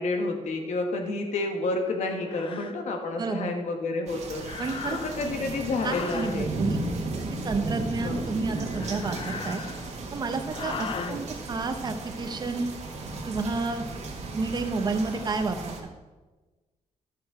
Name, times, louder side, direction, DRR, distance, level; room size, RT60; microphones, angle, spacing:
voice 1, 0.0-4.4 4.9-6.5 8.0-8.2 10.9-11.2, left 2 dB, 65° left, 3 dB, 1.5 m, -30 dB
sound 1, 1.3-1.5 2.2-2.8 4.4-5.3 5.8-6.4 8.6-10.0 10.5-11.2, left 5 dB, 45° left, 0.7 m, -38 dB
voice 2, 3.2-3.5 4.6-5.0 5.8-6.8 7.4-9.6 10.1-12.7 13.3-13.8 14.3-15.8, right 3 dB, 35° right, 7 dB, 0.8 m, -30 dB
sound 2, 4.1-15.8, right 2 dB, 60° right, 1.7 m, -35 dB
12.0 x 6.5 x 4.8 m, 1.2 s
wide cardioid pair, 155°, 13 cm